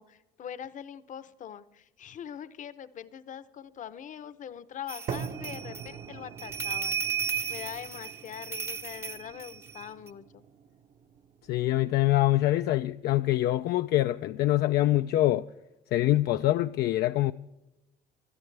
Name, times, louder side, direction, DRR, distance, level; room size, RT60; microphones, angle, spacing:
voice 1, 0.0-10.4, left 9 dB, 50° left, 0.8 m, -43 dB
sound 1, 4.9-10.1, right 7 dB, 15° right, 0.6 m, -35 dB
sound 2, 5.1-13.1, right 7 dB, 50° right, 1.0 m, -44 dB
voice 2, 11.5-15.5 15.9-17.3, left 15 dB, 70° left, 0.4 m, -24 dB
21.0 x 12.5 x 3.3 m
cardioid pair, 110°, 17 cm